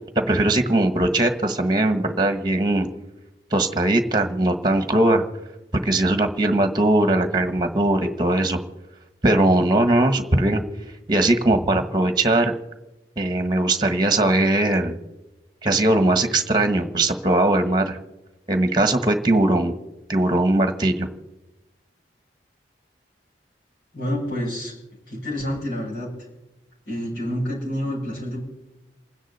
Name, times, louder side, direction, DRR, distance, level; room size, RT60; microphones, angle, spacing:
voice 1, 0.1-2.9 3.5-5.2 5.7-8.6 9.2-10.6 11.1-12.5 13.2-15.0 15.6-18.0 18.5-19.7 20.1-21.1, right 1 dB, 25° right, 8 dB, 1.3 m, -20 dB
voice 2, 23.9-24.7 25.1-26.1 26.9-28.5, equal, 75° left, -7 dB, 7.3 m, -28 dB
28.5 x 10.0 x 4.2 m, 1.0 s
head